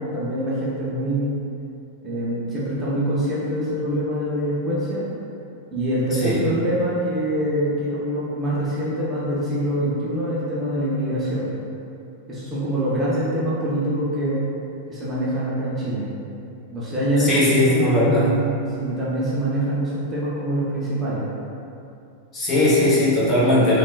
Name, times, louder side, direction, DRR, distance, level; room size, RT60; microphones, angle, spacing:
voice 1, 0.0-1.3 2.0-5.1 5.7-11.5 12.3-14.4 14.9-16.1 16.7-21.3, right 1 dB, 20° right, -9 dB, 0.7 m, -24 dB
voice 2, 17.2-18.3 22.3-23.8, left 1 dB, 25° left, -8 dB, 0.9 m, -18 dB
3.8 x 2.3 x 2.3 m, 2.7 s
figure-of-eight pair, 90°, 0 cm